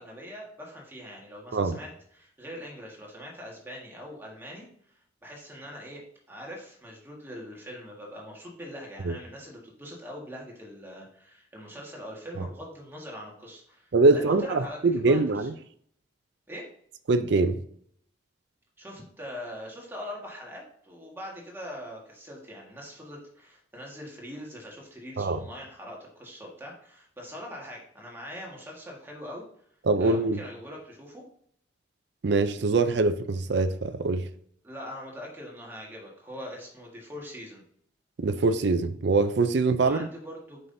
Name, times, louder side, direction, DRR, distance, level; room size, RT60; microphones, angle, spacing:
voice 1, 0.0-15.5 16.5-16.7 18.8-29.4 30.0-31.2 34.6-37.6 39.8-40.6, equal, 10° right, 1.6 m, -42 dB
voice 2, 13.9-15.5 17.1-17.6 25.2-25.4 29.9-30.4 32.2-34.2 38.2-40.0, right 3 dB, 60° right, 0.4 m, -23 dB
7.6 x 5.6 x 2.7 m
head